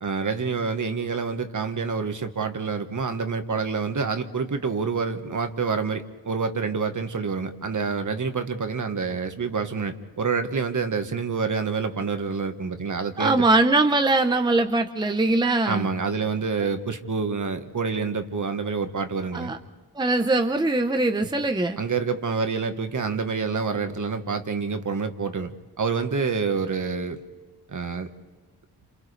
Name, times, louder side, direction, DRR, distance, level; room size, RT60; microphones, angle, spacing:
voice 1, 0.0-13.4 15.6-19.5 21.8-27.2 27.7-28.1, right 5 dB, 50° right, 7 dB, 1.4 m, -27 dB
voice 2, 13.2-15.9 19.3-19.6 19.9-21.8, right 2 dB, 10° right, 6 dB, 0.8 m, -21 dB
29.5 x 27.5 x 3.3 m, 1.4 s
wide cardioid pair, 110°, 40 cm